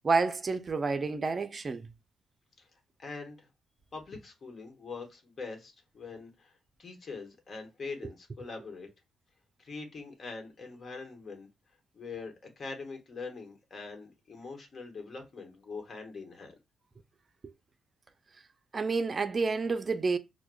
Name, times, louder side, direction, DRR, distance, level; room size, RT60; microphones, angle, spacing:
voice 1, 0.0-1.9 18.7-20.2, right 4 dB, 40° right, 0.4 m, -29 dB
voice 2, 3.0-3.5 3.9-6.5 6.8-8.9 9.6-11.5 11.9-16.5, left 4 dB, 50° left, 1.1 m, -43 dB
4.7 x 2.2 x 2.2 m
supercardioid pair, 60°, 0 cm